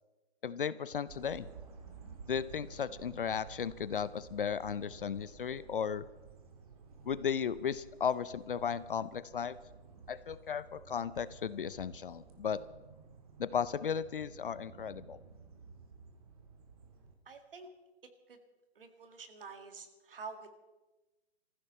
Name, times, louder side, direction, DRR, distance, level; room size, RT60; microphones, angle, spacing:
voice 1, 0.4-1.5 2.3-6.1 7.0-9.6 10.1-12.6 13.4-15.2, left 7 dB, 55° left, 16 dB, 0.6 m, -35 dB
sound 1, 1.1-17.1, right 5 dB, 35° right, 1.9 m, -54 dB
voice 2, 17.3-17.7 18.3-18.4 18.8-20.5, right 5 dB, 55° right, 7 dB, 2.1 m, -48 dB
22.5 x 15.0 x 4.2 m, 1.1 s
hypercardioid pair, 165°, 32 cm